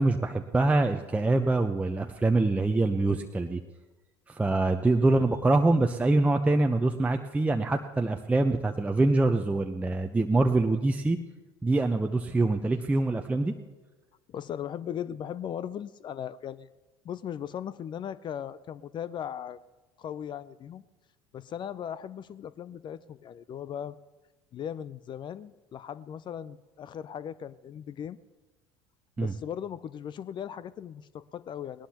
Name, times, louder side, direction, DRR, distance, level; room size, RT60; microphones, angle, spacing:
voice 1, 0.0-3.6 4.3-11.2 11.6-13.5 29.2-29.3, right 2 dB, 10° right, 4 dB, 0.8 m, -25 dB
voice 2, 14.3-16.7 17.0-19.6 20.0-20.8 21.3-24.0 24.5-28.2 29.2-31.9, left 9 dB, 35° left, 18 dB, 0.5 m, -38 dB
20.0 x 18.5 x 2.9 m, 1.2 s
hypercardioid pair, 70°, 13 cm